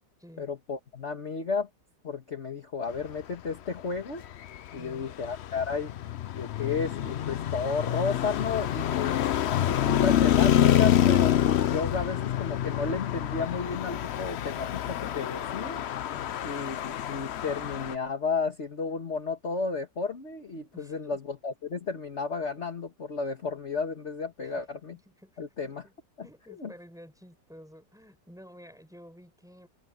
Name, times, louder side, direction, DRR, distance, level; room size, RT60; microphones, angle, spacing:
voice 1, 0.4-1.7 2.0-4.2 4.7-5.9 6.3-9.2 9.6-15.8 16.4-25.0 25.4-25.8 26.2-26.3 26.6-26.7, left 4 dB, 40° left, 2.0 m, -33 dB
Traffic noise roadway noise, 4.2-18.0, left 11 dB, 70° left, 0.6 m, -27 dB
voice 2, 4.8-5.1 20.7-21.0 24.4-24.6 24.9-25.9 26.2-29.7, equal, ahead, 6.9 m, -52 dB
omnidirectional pair, 1.9 m